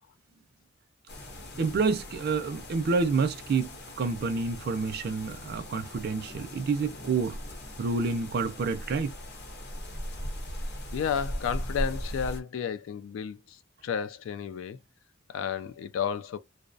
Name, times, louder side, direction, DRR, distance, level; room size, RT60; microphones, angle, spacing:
sound 1, 1.1-12.4, equal, 60° left, 0.8 m, -39 dB
voice 1, 1.6-3.7 4.0-7.4 7.8-9.1, right 4 dB, 55° right, 0.4 m, -28 dB
voice 2, 10.9-14.8 15.3-16.4, left 7 dB, 80° left, 0.3 m, -32 dB
2.5 x 2.0 x 2.5 m
head